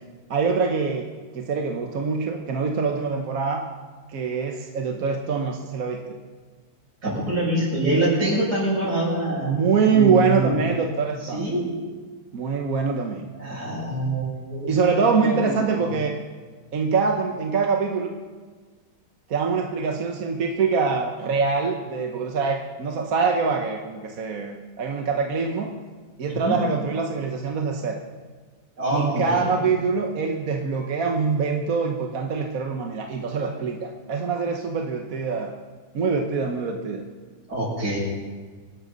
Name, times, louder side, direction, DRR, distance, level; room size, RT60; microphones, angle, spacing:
voice 1, 0.3-1.1 1.3-3.6 4.1-6.0 9.4-11.4 12.3-13.3 14.7-16.1 16.7-18.1 19.3-25.7 26.2-28.0 28.9-35.5 35.9-37.0, right 5 dB, 65° right, 2 dB, 1.5 m, -24 dB
voice 2, 7.0-9.6 9.8-10.6 11.3-11.7 13.3-15.9 26.3-26.6 28.8-29.6 37.5-38.0, right 1 dB, 90° right, -5 dB, 7.2 m, -25 dB
25.5 x 11.5 x 4.0 m, 1.4 s
omnidirectional pair, 1.7 m